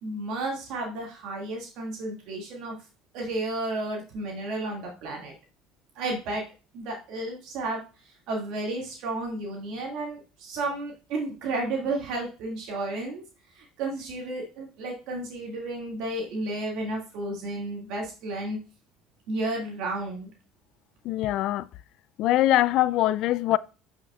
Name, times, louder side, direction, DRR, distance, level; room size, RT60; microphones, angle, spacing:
voice 1, 0.0-2.8 3.1-5.3 6.0-6.4 6.7-7.8 8.3-13.2 13.6-18.6 19.3-20.3, right 2 dB, 70° right, 2.1 m, -32 dB
voice 2, 21.0-21.7 22.2-23.6, left 15 dB, 65° left, 0.3 m, -23 dB
8.4 x 5.6 x 2.4 m
supercardioid pair, 85°, 0 cm